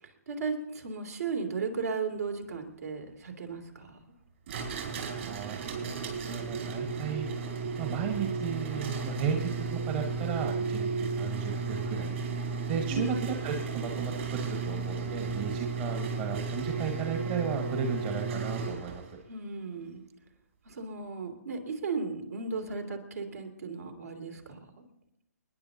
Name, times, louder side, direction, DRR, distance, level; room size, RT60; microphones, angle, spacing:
voice 1, 0.0-4.0 12.9-13.2 19.3-20.0 20.6-24.6, right 4 dB, 65° right, 3 dB, 2.9 m, -35 dB
sound 1, 4.5-19.1, right 4 dB, 50° right, 4.5 m, -34 dB
voice 2, 5.1-7.3 7.8-12.2 12.7-19.0, right 6 dB, 35° right, 4 dB, 1.5 m, -35 dB
29.0 x 10.5 x 2.8 m, 0.80 s
figure-of-eight pair, 135°, 9 cm